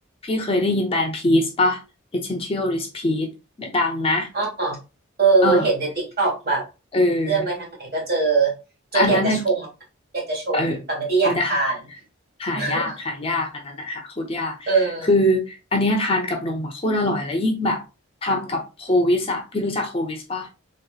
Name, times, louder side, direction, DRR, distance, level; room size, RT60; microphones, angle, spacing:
voice 1, 0.2-1.8 2.1-3.3 3.6-4.3 5.4-5.7 6.9-7.4 8.9-9.4 10.5-10.8 11.3-11.6 12.4-14.7 15.1-17.8 18.2-20.5, left 1 dB, 30° left, 0.6 m, -23 dB
voice 2, 4.3-4.8 5.2-6.6 7.3-8.5 8.9-9.6 10.1-11.7 12.5-13.0 14.7-15.1, right 4 dB, 50° right, 1.5 m, -22 dB
3.4 x 2.8 x 2.3 m
head